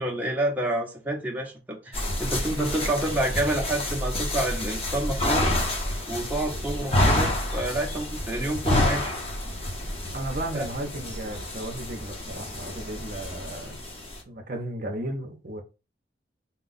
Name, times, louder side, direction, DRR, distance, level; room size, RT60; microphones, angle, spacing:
voice 1, 0.0-5.5 6.1-9.1 10.5-10.7, right 1 dB, 10° right, 0.8 m, -28 dB
sound 1, 1.9-14.2, left 1 dB, 30° left, 0.9 m, -28 dB
voice 2, 10.1-13.8 14.3-15.6, right 1 dB, 50° right, 0.7 m, -34 dB
4.3 x 2.3 x 3.9 m
head